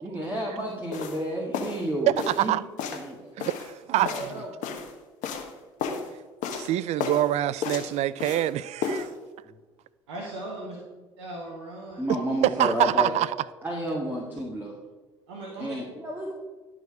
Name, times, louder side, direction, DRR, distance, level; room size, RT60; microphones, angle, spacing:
voice 1, 0.0-2.5 2.8-3.3 4.0-4.8 9.4-9.5 12.0-13.1 13.6-14.7 15.6-16.3, equal, 15° right, 1.7 m, -31 dB
sound 1, 0.9-1.2 1.5-1.8 2.2-2.5 2.8-3.1 3.4-4.9 5.2-5.5 5.8-6.1 6.4-6.7 7.0-7.3 7.6-8.5 8.8-9.1, left 6 dB, 60° left, 1.1 m, -32 dB
voice 2, 2.3-2.6 3.4-4.4 6.5-9.1 12.6-13.3, right 13 dB, 50° right, 0.4 m, -26 dB
voice 3, 10.1-10.8 11.2-12.0 15.3-15.8, right 2 dB, 75° right, 1.2 m, -38 dB
11.0 x 4.8 x 4.7 m
hypercardioid pair, 60°, 15 cm